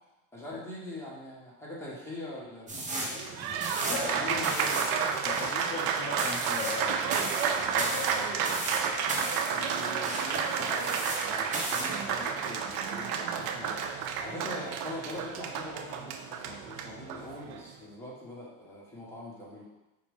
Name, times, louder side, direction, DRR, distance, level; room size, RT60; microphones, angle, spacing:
voice 1, 0.3-3.4 4.2-4.9 9.5-13.8 14.2-19.7, left 1 dB, 5° left, -6 dB, 1.5 m, -43 dB
sound 1, 2.7-11.3 11.5-12.0, right 2 dB, 15° right, 0.8 m, -36 dB
Applause, 3.0-17.7, right 6 dB, 60° right, 0.5 m, -31 dB
voice 2, 3.9-4.4 5.2-8.3, left 5 dB, 25° left, -2 dB, 0.5 m, -39 dB
4.8 x 2.5 x 3.6 m, 0.98 s
supercardioid pair, 100°, 42 cm